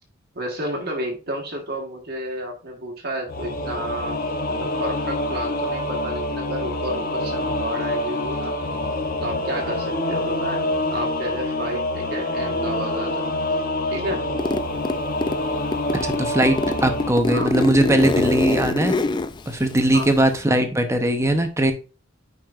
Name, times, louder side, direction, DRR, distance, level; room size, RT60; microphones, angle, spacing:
voice 1, 0.3-8.5 9.2-13.3 13.9-14.3 17.3-17.5 19.9-20.1, right 1 dB, 50° right, 0 dB, 1.5 m, -31 dB
Singing / Musical instrument, 3.3-17.1, left 1 dB, 45° left, 0.9 m, -26 dB
Zipper (clothing), 14.4-15.4 15.7-20.4, left 2 dB, 20° left, 0.3 m, -24 dB
voice 2, 16.0-19.0 19.5-21.7, right 1 dB, 15° right, 6 dB, 0.8 m, -20 dB
8.8 x 5.2 x 2.5 m, 0.34 s
head